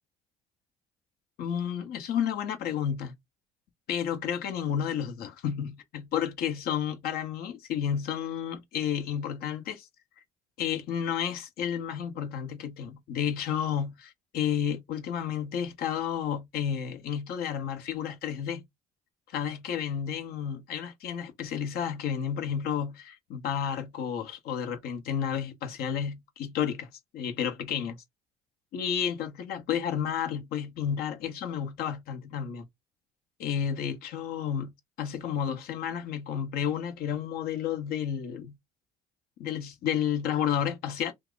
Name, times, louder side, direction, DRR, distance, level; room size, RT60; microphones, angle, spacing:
voice 1, 1.4-3.2 3.9-9.9 10.6-18.6 19.3-28.0 28.7-32.6 33.4-34.7 35.0-38.5 39.4-41.1, left 8 dB, 65° left, 0.9 m, -31 dB
2.8 x 2.4 x 3.7 m
supercardioid pair, 70°, 17 cm